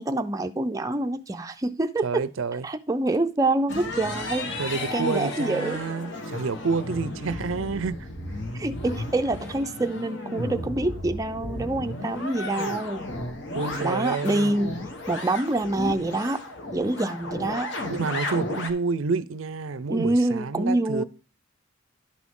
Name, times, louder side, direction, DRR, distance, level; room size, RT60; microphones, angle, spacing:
voice 1, 0.0-2.3 2.6-4.5 4.9-5.8 8.5-13.1 13.8-14.8 15.1-16.4 16.7-17.7 19.9-21.0, right 2 dB, 15° right, 0.4 m, -26 dB
voice 2, 2.0-2.7 4.6-8.1 13.5-14.5 17.9-21.0, right 4 dB, 80° right, 0.5 m, -29 dB
sound 1, 3.7-18.7, left 1 dB, 60° left, 1.4 m, -34 dB
11.0 x 6.1 x 3.7 m
head